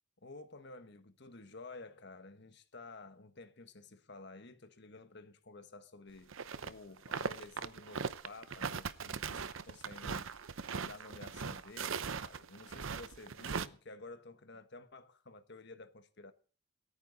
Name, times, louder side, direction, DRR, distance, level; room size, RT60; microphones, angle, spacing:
voice 1, 0.2-6.3 6.6-10.5 10.8-16.3, left 3 dB, 55° left, 1.4 m, -52 dB
sound 1, 6.3-6.7 7.0-13.7, right 5 dB, 70° right, 0.7 m, -40 dB
26.5 x 9.3 x 4.0 m
head